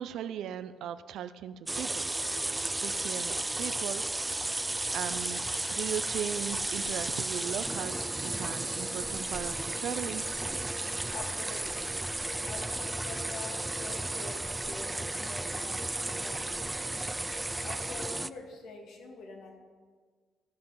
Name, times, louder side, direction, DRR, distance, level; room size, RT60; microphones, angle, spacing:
voice 1, 0.0-2.1 2.6-4.3 4.9-10.3, right 9 dB, 80° right, 11 dB, 0.4 m, -38 dB
sound 1, 1.7-18.3, right 2 dB, 15° right, 0.3 m, -34 dB
sound 2, 4.7-9.1, equal, 5° left, 2.2 m, -49 dB
voice 2, 11.1-11.9 12.5-16.8 17.6-19.6, left 3 dB, 75° left, 2 dB, 2.1 m, -45 dB
15.0 x 7.7 x 5.5 m, 1.6 s
cardioid pair, 90°, 0 cm